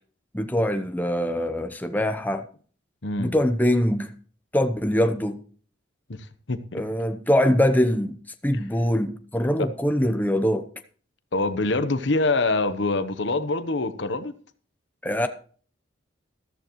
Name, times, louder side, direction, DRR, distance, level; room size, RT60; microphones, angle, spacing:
voice 1, 0.3-2.4 3.2-4.1 4.5-5.4 6.7-8.2 8.4-10.7 15.0-15.3, equal, 10° left, 0.8 m, -23 dB
voice 2, 3.0-3.3 6.2-6.8 11.3-14.3, left 2 dB, 65° left, 1.0 m, -25 dB
13.5 x 13.5 x 3.1 m
head